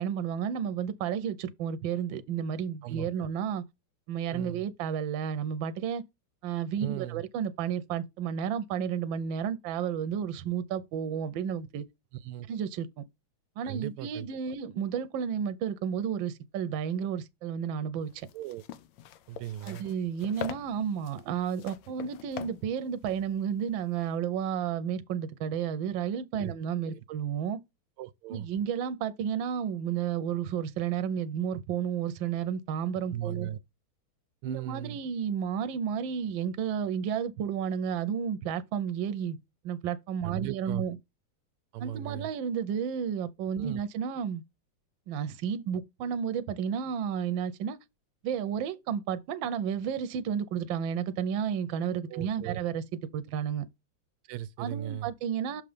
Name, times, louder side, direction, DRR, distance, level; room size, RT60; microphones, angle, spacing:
voice 1, 0.0-3.6 4.1-6.0 6.4-11.8 12.5-13.0 13.6-18.3 19.6-27.6 28.3-33.5 34.4-39.4 39.6-41.0 41.8-44.4 45.1-47.8 48.2-52.8 53.1-53.6 54.6-55.6, right 8 dB, 70° right, 1.4 m, -32 dB
voice 2, 2.8-3.3 4.3-4.6 6.8-7.2 12.2-12.5 13.6-14.3 18.3-18.6 19.3-19.8 26.4-26.5 26.9-27.0 28.0-28.5 33.1-33.6 34.4-35.0 40.2-40.8 41.7-42.3 43.6-43.8 52.1-52.6 54.2-55.1, right 13 dB, 90° right, 1.5 m, -37 dB
sound 1, 18.1-24.1, left 10 dB, 70° left, 1.3 m, -44 dB
6.6 x 3.7 x 5.0 m
omnidirectional pair, 2.4 m